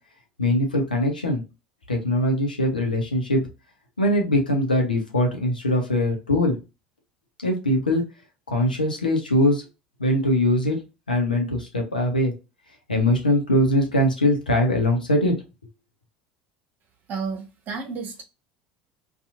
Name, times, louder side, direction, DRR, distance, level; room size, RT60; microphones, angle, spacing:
voice 1, 0.4-1.4 1.9-3.4 4.0-6.6 7.4-8.0 8.5-9.7 10.0-10.8 11.1-12.3 12.9-15.3, left 1 dB, 85° left, 0.7 m, -21 dB
voice 2, 17.1-18.2, right 5 dB, 45° right, 1.0 m, -31 dB
2.8 x 2.4 x 2.5 m
figure-of-eight pair, 70°, 5 cm